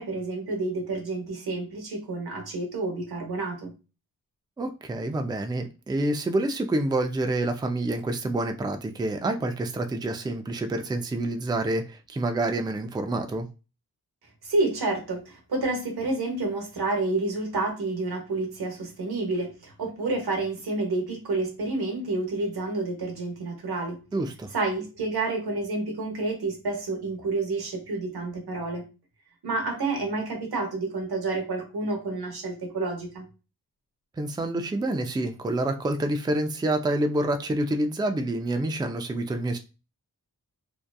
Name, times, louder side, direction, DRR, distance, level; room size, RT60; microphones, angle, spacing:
voice 1, 0.0-3.7 14.4-24.0 24.5-28.8 29.4-33.2, right 2 dB, 90° right, 0.9 m, -29 dB
voice 2, 4.6-13.5 24.1-24.5 34.2-39.6, right 1 dB, 10° right, 0.3 m, -27 dB
2.7 x 2.3 x 2.2 m
cardioid pair, 50°, 38 cm